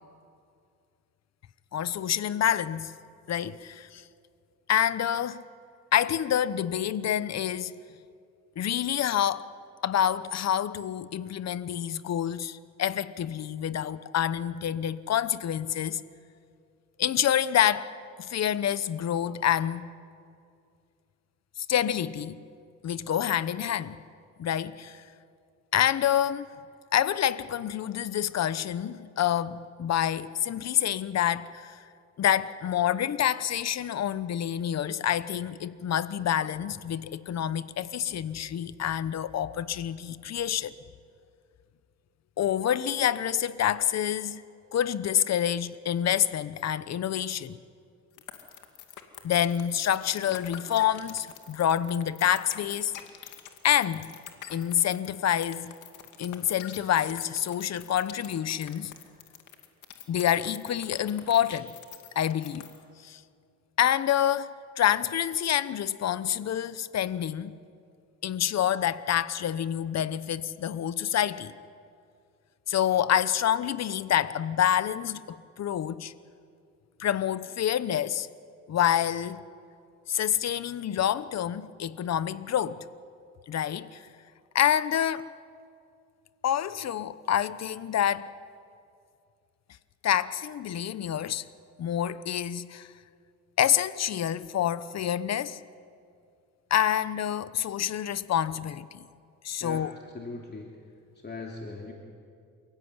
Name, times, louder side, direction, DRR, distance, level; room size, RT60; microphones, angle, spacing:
voice 1, 1.7-3.0 3.3-4.0 4.7-5.4 5.9-7.8 8.6-9.5 9.8-16.0 17.0-17.9 18.2-19.9 21.7-22.4 22.8-24.0 24.4-25.0 25.7-26.5 26.9-31.8 32.2-40.7 42.4-44.4 44.7-47.6 49.2-52.9 53.6-54.1 54.5-55.7 56.2-58.9 60.1-61.7 62.1-62.7 63.0-63.2 63.8-67.5 68.2-71.5 72.7-76.1 77.0-78.3 78.7-79.4 80.1-82.8 83.5-84.0 84.5-85.3 86.4-88.3 90.0-91.4 91.8-92.9 93.6-95.6 96.7-99.0 99.4-99.9, left 10 dB, 60° left, 1.0 m, -27 dB
sound 1, 48.2-62.8, left 11 dB, 85° left, 2.4 m, -45 dB
voice 2, 100.1-100.8 101.1-101.9, left 3 dB, 35° left, 2.9 m, -39 dB
28.5 x 16.0 x 9.7 m
cardioid pair, 90°, 30 cm